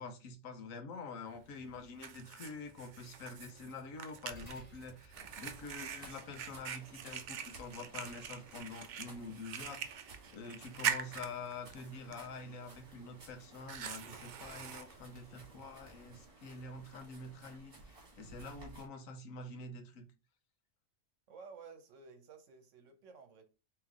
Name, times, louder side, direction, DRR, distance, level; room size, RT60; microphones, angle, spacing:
voice 1, 0.0-10.0 10.3-20.1, left 3 dB, 85° left, 1.2 m, -47 dB
Fire, 1.3-16.3, right 8 dB, 90° right, 0.4 m, -44 dB
sound 1, 4.3-13.0, right 1 dB, 40° left, 1.9 m, -63 dB
sound 2, 5.1-18.9, right 2 dB, 45° right, 1.6 m, -57 dB
voice 2, 21.3-23.5, right 5 dB, 70° right, 1.1 m, -54 dB
3.4 x 3.2 x 3.5 m
omnidirectional pair, 1.4 m